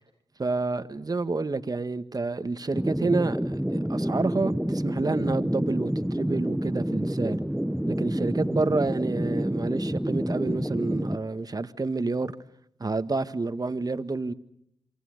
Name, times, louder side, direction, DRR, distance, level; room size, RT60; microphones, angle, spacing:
voice 1, 0.4-7.4 7.9-12.3 12.8-14.3, right 3 dB, 35° right, 1.7 m, -29 dB
sound 1, 2.7-11.2, equal, 5° right, 1.2 m, -28 dB
28.5 x 24.0 x 6.7 m
cardioid pair, 45°, 11 cm